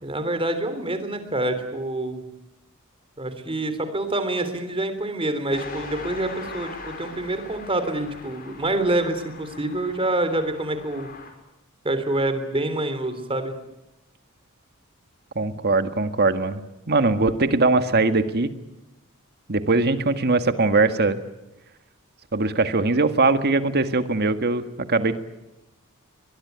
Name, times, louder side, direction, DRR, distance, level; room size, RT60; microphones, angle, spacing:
voice 1, 0.0-2.2 3.2-11.1 11.8-13.5, right 1 dB, 25° right, 10 dB, 3.5 m, -26 dB
sound 1, 5.5-11.3, left 3 dB, 45° left, 5.9 m, -40 dB
voice 2, 15.4-16.6 16.9-18.5 19.5-21.2 22.3-25.2, right 3 dB, 50° right, 9 dB, 1.8 m, -21 dB
24.0 x 22.0 x 9.5 m, 0.96 s
head